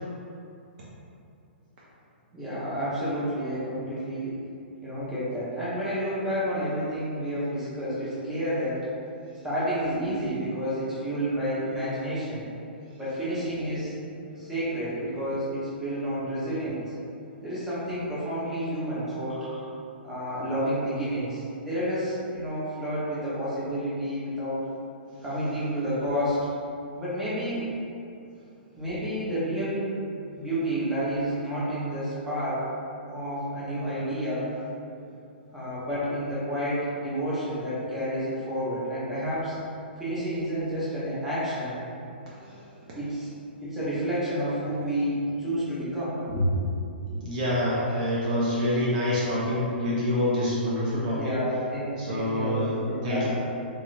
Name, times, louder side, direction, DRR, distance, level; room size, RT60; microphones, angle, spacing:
voice 1, 2.3-4.4 4.8-8.9 9.4-12.5 12.9-13.9 14.4-16.8 17.4-19.6 20.0-24.6 25.2-26.5 27.0-27.7 28.8-29.9 30.4-32.7 33.1-34.5 35.5-39.6 40.0-41.8 43.0-43.3 43.6-46.7 47.0-47.2 51.1-53.3, equal, 5° right, -11 dB, 0.9 m, -30 dB
voice 2, 47.2-51.3 52.0-52.7 53.0-53.3, left 1 dB, 45° right, -7 dB, 0.6 m, -26 dB
3.1 x 2.8 x 2.5 m, 2.6 s
figure-of-eight pair, 115°, 6 cm